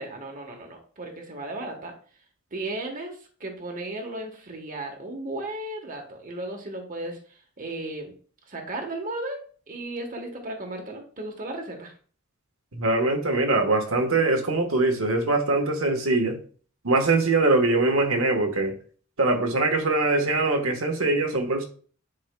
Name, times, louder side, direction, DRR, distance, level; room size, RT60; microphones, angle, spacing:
voice 1, 0.0-1.9 2.5-7.2 7.6-8.1 8.5-9.4 9.7-11.9, right 2 dB, 40° right, 1.2 m, -35 dB
voice 2, 12.7-16.4 16.8-18.8 19.2-21.6, right 2 dB, 70° right, 1.3 m, -22 dB
10.0 x 4.6 x 2.2 m
head